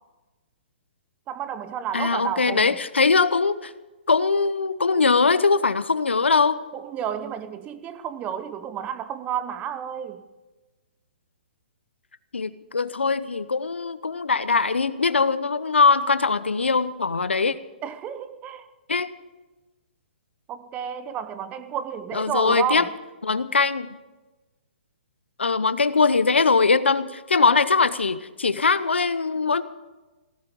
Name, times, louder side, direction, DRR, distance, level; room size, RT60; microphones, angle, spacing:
voice 1, 1.3-2.8 6.7-10.2 17.8-18.7 20.5-22.9, right 9 dB, 25° right, 0.9 m, -31 dB
voice 2, 1.9-3.7 4.1-6.6 12.3-17.5 18.9-19.1 22.1-22.8 23.2-23.9 25.4-29.6, left 4 dB, 90° left, 0.8 m, -21 dB
16.5 x 14.5 x 5.4 m
hypercardioid pair, 130°, 6 cm